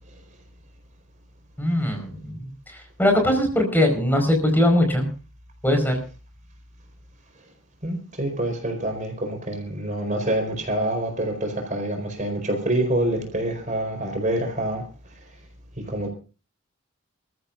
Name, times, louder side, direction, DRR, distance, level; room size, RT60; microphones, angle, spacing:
voice 1, 1.6-5.0 5.6-6.0, left 1 dB, 10° left, 4 dB, 4.8 m, -21 dB
voice 2, 7.8-14.8 15.8-16.1, right 1 dB, 35° right, 4 dB, 4.4 m, -26 dB
27.5 x 14.5 x 2.5 m, 0.34 s
head